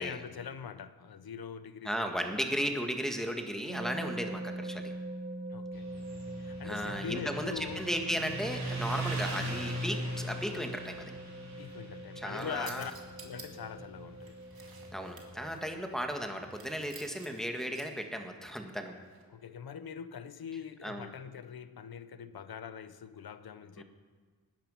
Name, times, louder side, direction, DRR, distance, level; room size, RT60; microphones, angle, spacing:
voice 1, 0.0-2.4 5.5-7.9 11.6-12.9 13.2-14.4 19.3-23.8, left 7 dB, 90° left, 0.7 m, -43 dB
voice 2, 1.9-4.9 6.6-11.1 12.2-12.9 14.9-19.0 20.8-21.1 23.8-23.9, equal, ahead, 1.9 m, -35 dB
sound 1, 3.7-15.8, right 2 dB, 30° right, 0.8 m, -43 dB
Motorcycle, 5.7-16.8, right 1 dB, 50° right, 4.2 m, -40 dB
sound 2, 12.4-13.5 14.1-15.7 16.5-18.0 19.0-19.2, right 4 dB, 80° right, 2.0 m, -52 dB
18.5 x 10.5 x 5.7 m
cardioid pair, 55°, 36 cm